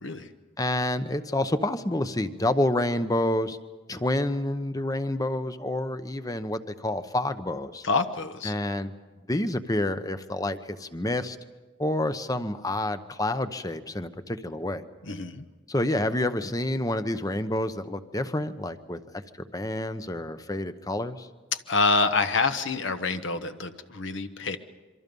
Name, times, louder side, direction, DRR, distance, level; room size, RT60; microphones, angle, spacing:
voice 1, 0.6-3.6 3.9-7.8 8.4-8.9 9.3-11.4 11.8-14.8 15.7-19.0 19.4-21.3, left 1 dB, 15° left, 10 dB, 0.8 m, -28 dB
voice 2, 7.8-8.5 15.1-15.4 21.7-24.6, left 3 dB, 65° left, 8 dB, 1.1 m, -26 dB
27.0 x 24.0 x 5.4 m, 1.2 s
head